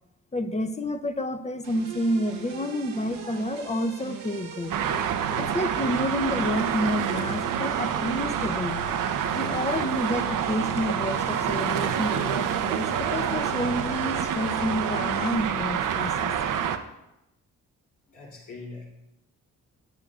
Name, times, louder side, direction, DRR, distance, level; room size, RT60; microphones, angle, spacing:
voice 1, 0.3-4.7 5.4-8.8 9.3-16.3, left 1 dB, 20° left, 8 dB, 0.8 m, -29 dB
sound 1, 1.6-15.3, right 4 dB, 90° right, 1.7 m, -41 dB
Traffic noise roadway noise, 4.7-16.8, right 8 dB, 65° right, 0.7 m, -27 dB
voice 2, 18.1-18.8, left 3 dB, 60° left, -4 dB, 3.1 m, -41 dB
10.5 x 8.7 x 2.5 m, 0.92 s
supercardioid pair, 50°, 34 cm